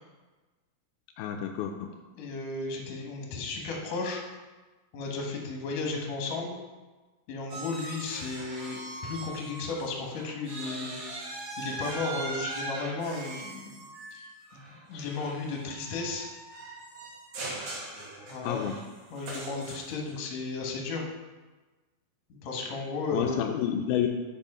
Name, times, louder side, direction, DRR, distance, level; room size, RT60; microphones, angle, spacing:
voice 1, 1.2-1.9 18.4-18.7 23.1-24.1, left 9 dB, 85° left, 3 dB, 2.4 m, -29 dB
voice 2, 2.2-4.2 4.9-6.6 7.3-11.0 11.6-13.8 14.1-16.3 18.3-18.6 19.1-21.0 22.4-23.5, left 3 dB, 60° left, 0 dB, 2.1 m, -34 dB
sound 1, 7.5-9.9 10.2-20.1, right 2 dB, 60° right, 3.2 m, -40 dB
7.2 x 5.5 x 5.4 m, 1.3 s
omnidirectional pair, 4.5 m